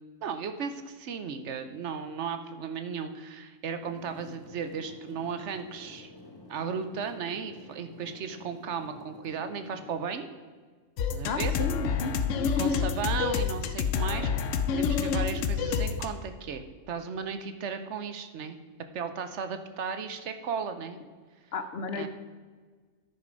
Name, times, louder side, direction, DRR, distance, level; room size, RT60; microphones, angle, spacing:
voice 1, 0.2-6.1 6.5-10.3 11.1-11.5 12.6-14.3 14.7-18.6 18.9-21.0 21.9-22.1, right 6 dB, 70° right, 9 dB, 1.0 m, -35 dB
sound 1, 3.8-9.9, left 2 dB, 20° left, 0.9 m, -49 dB
sound 2, 11.0-16.1, left 6 dB, 90° left, 1.0 m, -28 dB
voice 2, 11.2-12.1 21.5-22.1, left 3 dB, 60° left, 9 dB, 0.9 m, -33 dB
10.5 x 6.5 x 5.2 m, 1.5 s
omnidirectional pair, 1.3 m